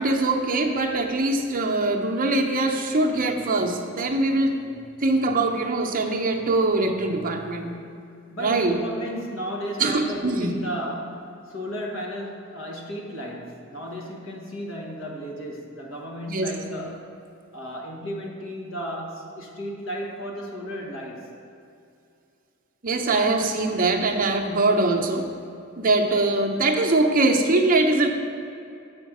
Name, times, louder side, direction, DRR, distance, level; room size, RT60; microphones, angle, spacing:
voice 1, 0.0-4.6 5.0-7.7 8.4-8.8 9.8-10.5 16.3-16.5 22.8-25.3 25.8-28.1, right 2 dB, 40° right, 2 dB, 0.7 m, -22 dB
voice 2, 8.3-17.1 17.5-21.3, equal, 65° left, -1 dB, 1.4 m, -34 dB
7.2 x 5.1 x 6.1 m, 2.6 s
head